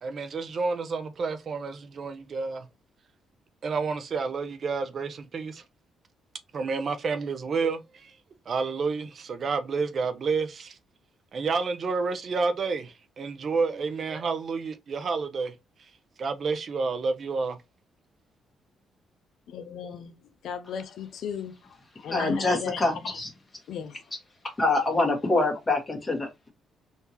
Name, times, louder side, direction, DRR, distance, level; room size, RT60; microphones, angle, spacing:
voice 1, 0.0-2.6 3.6-5.6 6.5-8.1 8.5-10.8 11.3-15.5 16.2-17.6, right 4 dB, 50° right, 0.6 m, -29 dB
voice 2, 19.5-20.1 20.4-21.5 22.0-23.2 23.7-23.9, left 8 dB, 70° left, 0.5 m, -35 dB
voice 3, 22.1-23.3 24.6-26.5, left 2 dB, 20° left, 1.5 m, -25 dB
3.5 x 2.7 x 2.8 m
cardioid pair, 90°, 0 cm